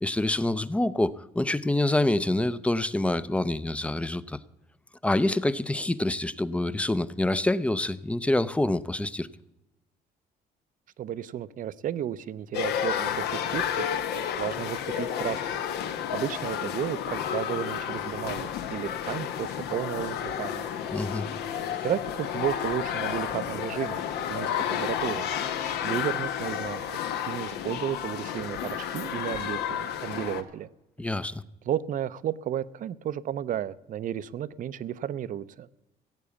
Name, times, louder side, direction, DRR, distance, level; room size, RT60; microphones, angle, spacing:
voice 1, 0.0-4.4 5.0-9.3 20.9-21.3 31.0-31.4, left 1 dB, 5° left, 16 dB, 0.5 m, -26 dB
voice 2, 11.0-13.9 14.1-15.4 16.1-20.7 21.5-25.3 25.8-30.7 31.6-35.7, right 10 dB, 50° right, 17 dB, 0.6 m, -33 dB
sound 1, 12.5-30.4, left 9 dB, 80° left, 1.2 m, -31 dB
16.5 x 8.3 x 7.1 m, 0.92 s
cardioid pair, 110°, 17 cm